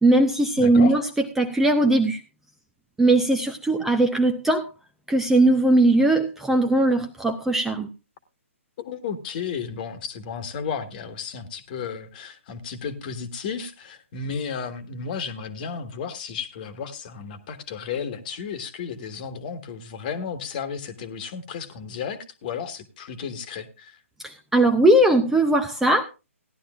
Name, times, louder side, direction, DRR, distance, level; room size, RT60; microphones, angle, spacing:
voice 1, 0.0-1.0 1.4-2.2 3.0-4.7 5.1-7.9 24.2-26.0, right 2 dB, 5° right, 5 dB, 0.6 m, -19 dB
voice 2, 0.6-1.0 3.8-3.9 8.8-24.0, left 6 dB, 40° left, 10 dB, 1.5 m, -33 dB
17.0 x 11.5 x 2.5 m, 0.28 s
figure-of-eight pair, 140°, 8 cm